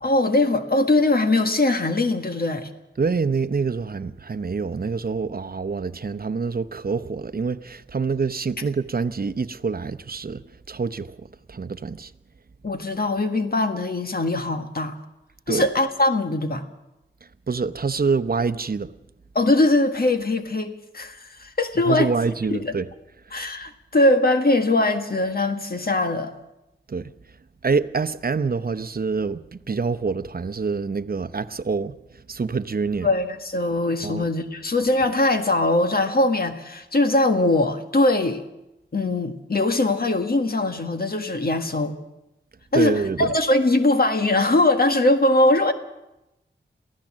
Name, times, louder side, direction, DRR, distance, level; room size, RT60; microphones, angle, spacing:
voice 1, 0.0-2.7 12.6-14.9 15.5-16.6 19.3-22.1 22.5-22.7 23.3-26.3 33.0-38.4 38.9-42.0 42.7-45.7, left 2 dB, 50° left, 1.7 m, -21 dB
voice 2, 3.0-11.2 11.5-12.1 15.5-15.7 17.5-18.9 21.9-22.9 26.9-27.1 27.6-32.0 32.3-33.1 34.0-34.2 42.7-43.3, right 5 dB, 50° right, 0.9 m, -26 dB
23.0 x 15.5 x 7.5 m
wide cardioid pair, 60°, 19 cm